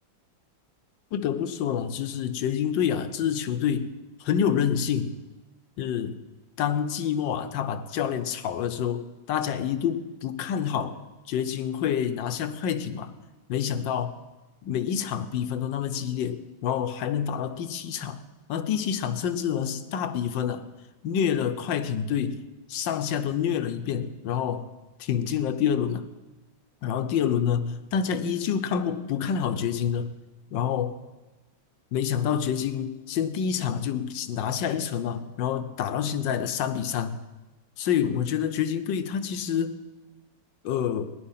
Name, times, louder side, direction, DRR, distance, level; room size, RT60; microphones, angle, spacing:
voice 1, 1.1-5.2 5.8-6.2 6.6-11.0 11.3-13.2 13.5-14.1 14.6-18.2 18.5-20.6 21.0-22.4 22.7-24.7 25.0-26.1 26.8-30.1 30.5-31.0 31.9-37.2 37.8-39.8 40.6-41.1, left 8 dB, 75° left, 11 dB, 1.5 m, -27 dB
18.5 x 10.5 x 5.7 m, 1.1 s
omnidirectional pair, 2.1 m